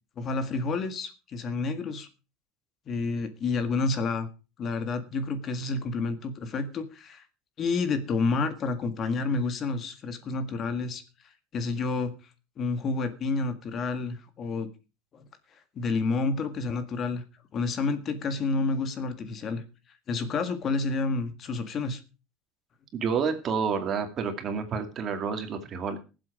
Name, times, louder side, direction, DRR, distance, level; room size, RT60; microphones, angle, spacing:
voice 1, 0.2-2.1 2.9-4.3 4.6-7.2 7.6-11.0 11.5-12.2 12.6-14.7 15.1-15.2 15.7-17.2 17.5-19.6 20.1-22.0, left 3 dB, 35° left, 10 dB, 1.7 m, -29 dB
voice 2, 22.9-26.0, right 6 dB, 35° right, 7 dB, 2.4 m, -29 dB
17.5 x 7.9 x 5.1 m, 0.32 s
cardioid pair, 140°, 0 cm